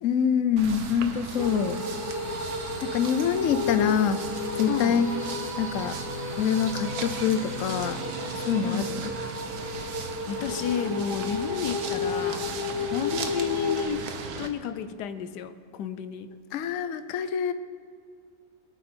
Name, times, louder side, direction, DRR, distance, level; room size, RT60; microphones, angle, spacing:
voice 1, 0.0-1.8 2.8-4.2 4.6-5.1 5.6-6.0 6.4-8.0 8.4-9.1 16.5-17.5, left 7 dB, 65° left, 11 dB, 0.9 m, -25 dB
sound 1, 0.6-14.5, right 4 dB, 65° right, 1.4 m, -37 dB
sound 2, 1.4-13.9, left 4 dB, 20° left, 1.1 m, -33 dB
voice 2, 4.7-5.1 8.6-8.9 9.9-12.5 12.8-14.1 14.4-16.3, left 8 dB, 80° left, 12 dB, 1.3 m, -32 dB
22.5 x 8.0 x 4.4 m, 2.2 s
omnidirectional pair, 1.8 m